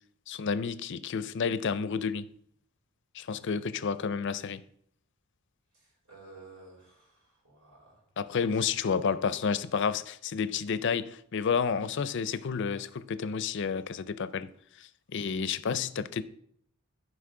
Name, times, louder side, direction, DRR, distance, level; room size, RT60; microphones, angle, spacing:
voice 1, 0.3-2.3 3.1-4.6 8.2-14.5 14.8-16.2, left 6 dB, 60° left, 0.5 m, -30 dB
voice 2, 5.7-8.1 8.4-9.5, right 3 dB, 90° right, 4.3 m, -55 dB
15.0 x 5.1 x 3.7 m
head